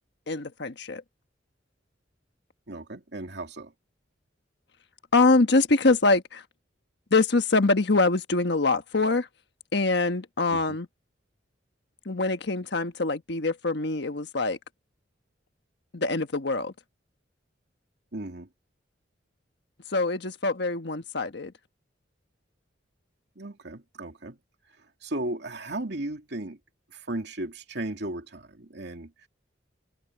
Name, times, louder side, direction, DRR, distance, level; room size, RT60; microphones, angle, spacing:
voice 1, 0.3-1.0 5.1-6.4 7.1-9.3 9.7-10.9 12.0-14.6 15.9-16.7 19.9-21.5, left 3 dB, 65° left, 1.3 m, -24 dB
voice 2, 2.7-3.7 10.5-10.8 18.1-18.5 23.4-24.4 25.0-26.6 26.9-29.3, right 1 dB, 65° right, 2.8 m, -35 dB
head